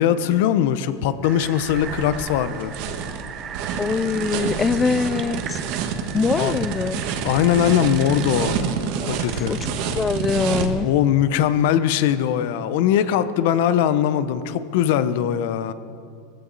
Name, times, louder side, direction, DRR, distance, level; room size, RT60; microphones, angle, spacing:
voice 1, 0.0-2.7 6.3-6.6 7.2-8.6 9.1-9.6 10.8-15.7, left 10 dB, 60° left, 12 dB, 0.9 m, -20 dB
sound 1, 1.2-8.6, right 8 dB, 30° right, 0.9 m, -38 dB
sound 2, 1.6-10.7, right 6 dB, 55° right, 1.5 m, -28 dB
voice 2, 3.8-5.6 6.1-7.0 9.0-9.1 9.5-9.6 10.0-10.9, left 5 dB, 15° left, 17 dB, 0.4 m, -23 dB
20.0 x 15.0 x 4.1 m, 2.4 s
supercardioid pair, 150°, 0 cm